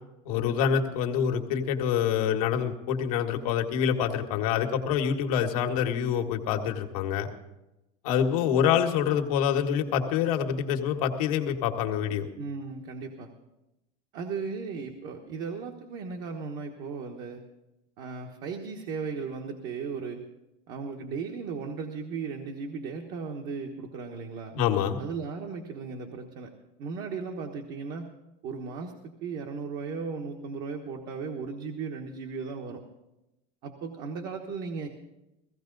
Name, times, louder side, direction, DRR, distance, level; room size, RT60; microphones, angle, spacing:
voice 1, 0.2-7.3 8.0-12.3 24.5-25.0, left 8 dB, 90° left, 4 dB, 1.6 m, -26 dB
voice 2, 12.4-13.3 14.1-17.4 18.0-20.3 20.7-24.6 25.0-26.5 26.8-28.1 28.4-32.8 33.6-34.9, right 5 dB, 55° right, 2 dB, 1.3 m, -36 dB
16.5 x 16.0 x 4.0 m, 0.94 s
supercardioid pair, 145°, 18 cm